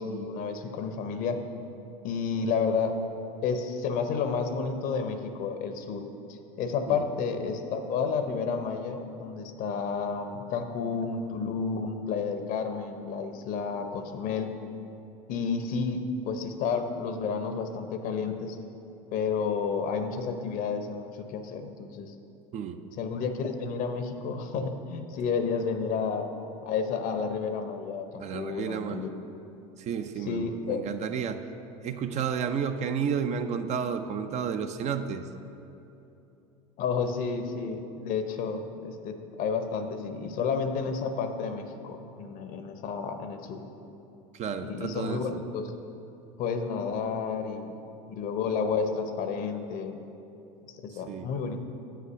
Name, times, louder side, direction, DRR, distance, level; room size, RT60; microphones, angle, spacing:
voice 1, 0.0-1.4 2.0-2.9 3.4-6.0 6.3-14.5 15.3-18.6 19.1-22.1 23.0-26.3 26.6-29.1 30.2-30.8 36.8-43.6 44.6-45.7 46.4-47.8 48.1-50.0 50.8-51.6, left 5 dB, 55° left, 7 dB, 0.8 m, -31 dB
voice 2, 28.2-29.0 29.8-31.4 31.8-35.2 44.3-45.4 51.1-51.3, right 7 dB, 45° right, 8 dB, 0.6 m, -31 dB
7.5 x 5.8 x 6.2 m, 2.9 s
hypercardioid pair, 90°, 17 cm